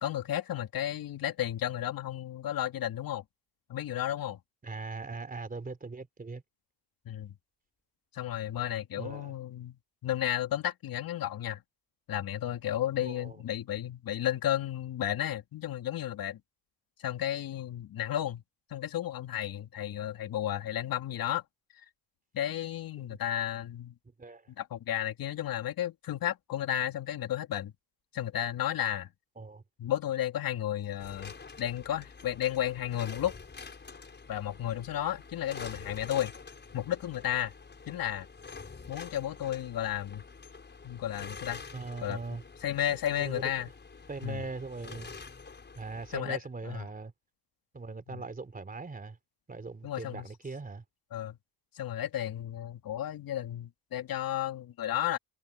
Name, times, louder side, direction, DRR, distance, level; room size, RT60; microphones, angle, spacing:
voice 1, 0.0-3.2 3.7-4.4 7.1-7.3 8.1-11.6 12.1-16.4 17.0-18.4 18.7-21.4 22.3-23.9 24.6-27.7 28.1-29.1 29.8-33.3 34.3-36.3 36.7-37.5 37.9-38.3 38.9-40.2 40.8-41.6 42.0-42.2 42.6-43.7 44.2-44.4 46.1-46.4 46.6-46.8 49.8-50.3 51.1-51.4 51.7-55.2, left 11 dB, 55° left, 2.7 m, -33 dB
voice 2, 4.6-6.4 8.9-9.3 13.0-13.4 23.1-23.2 24.2-24.5 29.4-29.6 41.7-42.4 42.9-43.5 44.1-45.2 45.7-47.1 47.7-49.2 49.5-50.8, right 3 dB, 20° right, 3.3 m, -40 dB
sound 1, 31.0-46.2, left 4 dB, 25° left, 5.9 m, -47 dB
cardioid pair, 105°, 43 cm